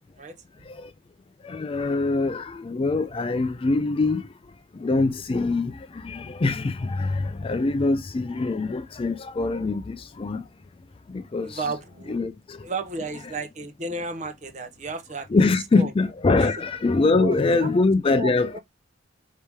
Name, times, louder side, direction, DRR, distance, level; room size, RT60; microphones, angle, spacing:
voice 1, 1.5-4.2 4.8-5.7 6.0-10.4 11.1-11.6 12.1-12.3 15.3-18.6, left 3 dB, 25° left, 0.3 m, -23 dB
voice 2, 11.4-12.2 12.6-15.3 15.8-15.9 16.4-16.5 17.1-17.7 18.1-18.6, right 3 dB, 35° right, 0.7 m, -33 dB
4.7 x 2.8 x 3.4 m
head